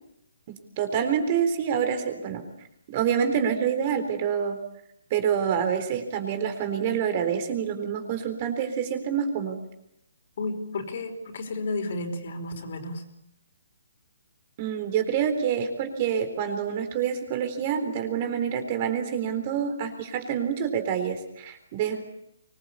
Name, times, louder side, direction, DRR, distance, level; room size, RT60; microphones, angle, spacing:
voice 1, 0.5-2.4 2.9-4.6 5.1-9.6 14.6-22.0, right 8 dB, 30° right, 7 dB, 3.9 m, -27 dB
voice 2, 10.4-13.0, left 2 dB, 50° left, 5 dB, 5.2 m, -32 dB
24.5 x 21.0 x 8.6 m, 0.78 s
hypercardioid pair, 160°, 0 cm